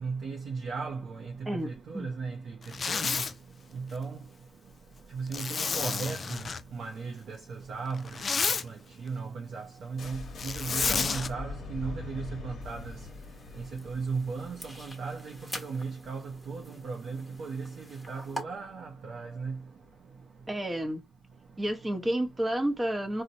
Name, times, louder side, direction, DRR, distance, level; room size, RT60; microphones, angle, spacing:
voice 1, 0.0-2.5 2.9-3.2 3.7-4.2 5.1-8.0 8.6-8.7 9.0-12.9 13.6-19.6, right 4 dB, 65° right, 0.6 m, -36 dB
Zipper (clothing), 2.6-3.3 5.3-6.6 7.9-8.6 10.4-11.3, left 5 dB, 40° left, 0.3 m, -30 dB
sound 1, 10.0-15.8, left 4 dB, 55° left, 0.8 m, -42 dB
sound 2, 12.6-18.4, equal, 5° left, 1.0 m, -45 dB
voice 2, 20.5-21.0 21.6-23.2, right 1 dB, 20° right, 0.8 m, -30 dB
4.0 x 2.1 x 2.6 m
cardioid pair, 90°, 0 cm